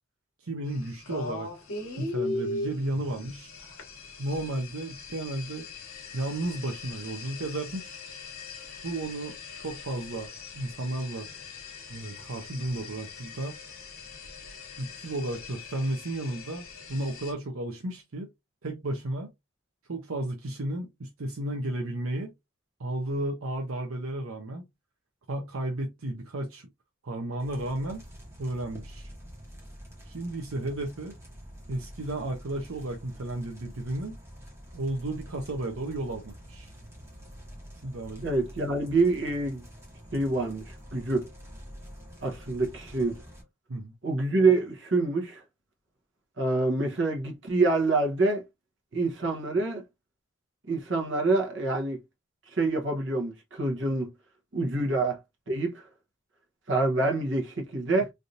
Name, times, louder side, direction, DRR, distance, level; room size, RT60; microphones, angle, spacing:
voice 1, 0.4-1.5 2.0-3.5 4.2-5.7 6.1-8.0 8.8-10.3 10.5-11.3 11.9-13.5 14.8-18.3 18.6-19.3 19.9-22.3 22.8-24.7 25.3-26.7 27.0-28.1 28.4-29.1 30.0-31.1 31.7-34.2 34.7-36.7 37.8-38.3 43.7-43.9, right 1 dB, 80° right, 0.7 m, -33 dB
sound 1, 0.7-17.3, left 3 dB, 85° left, 1.2 m, -40 dB
sound 2, 27.4-43.4, equal, 15° right, 1.1 m, -47 dB
voice 2, 38.2-39.6 40.1-41.3 42.2-43.2 44.0-45.4 46.4-48.4 48.9-49.8 50.7-52.0 52.5-54.1 54.5-55.2 55.5-55.8 56.7-58.1, right 3 dB, 60° right, 1.0 m, -26 dB
3.3 x 2.6 x 2.6 m
head